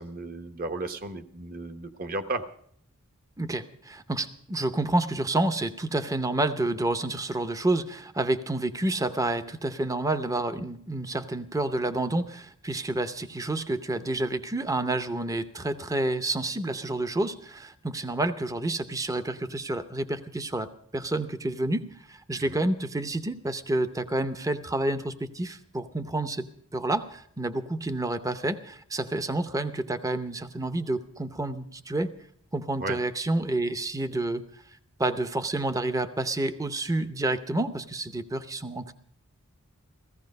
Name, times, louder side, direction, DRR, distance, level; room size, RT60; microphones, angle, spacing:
voice 1, 0.0-2.4 22.4-22.6 32.8-33.0, right 2 dB, 40° right, 8 dB, 1.0 m, -34 dB
voice 2, 3.4-26.5 26.7-32.1 32.5-34.4 35.0-38.9, right 2 dB, 15° right, 11 dB, 0.7 m, -29 dB
16.0 x 15.0 x 5.3 m, 0.63 s
head